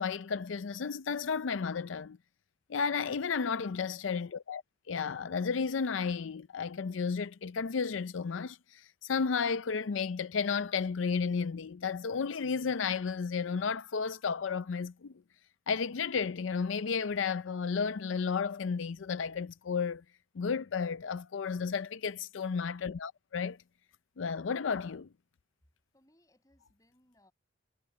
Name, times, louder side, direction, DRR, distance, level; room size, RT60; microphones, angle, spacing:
voice 1, 0.0-2.2 2.7-4.6 4.9-15.1 15.7-20.0 20.4-23.6 24.2-25.0, left 5 dB, 90° left, 0.5 m, -33 dB
voice 2, 24.7-25.0 25.9-27.3, equal, 20° left, 7.2 m, -67 dB
head